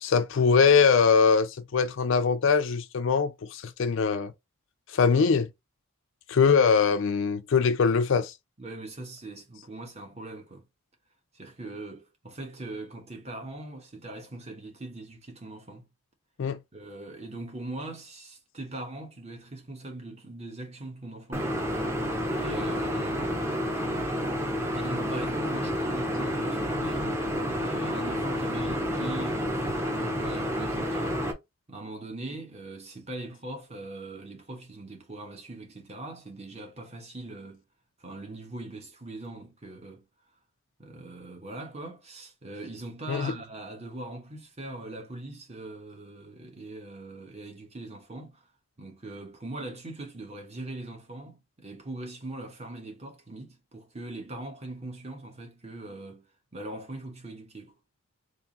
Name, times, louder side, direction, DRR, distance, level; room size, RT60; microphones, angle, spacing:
voice 1, 0.0-4.3 4.9-5.5 6.3-8.3 16.4-16.6 43.1-43.3, left 5 dB, 60° left, 0.4 m, -22 dB
voice 2, 8.6-10.6 11.3-15.8 16.7-21.5 22.3-23.5 24.7-27.2 27.5-31.2 31.7-37.6 38.0-40.0 40.8-48.5 48.8-56.3 56.5-57.8, right 2 dB, 30° right, 1.1 m, -41 dB
sound 1, 21.3-31.3, equal, 10° right, 0.7 m, -29 dB
3.5 x 2.5 x 4.0 m
head